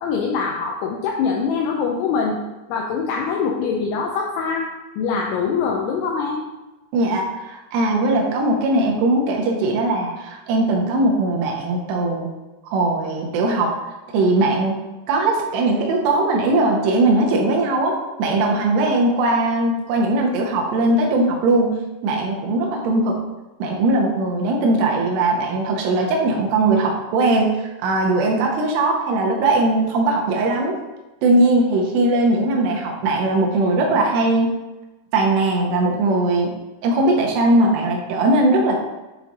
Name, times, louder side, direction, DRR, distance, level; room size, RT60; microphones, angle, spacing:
voice 1, 0.0-2.4 2.7-4.7 5.0-6.4, left 5 dB, 85° left, 0 dB, 2.3 m, -23 dB
voice 2, 6.9-12.3 12.7-13.7 14.1-14.7 15.1-17.9 18.2-21.7 22.0-23.2 23.6-30.7 31.2-34.5 35.1-36.5 36.8-38.8, right 2 dB, 75° right, -1 dB, 2.8 m, -19 dB
8.3 x 3.2 x 3.9 m, 1.1 s
omnidirectional pair, 5.4 m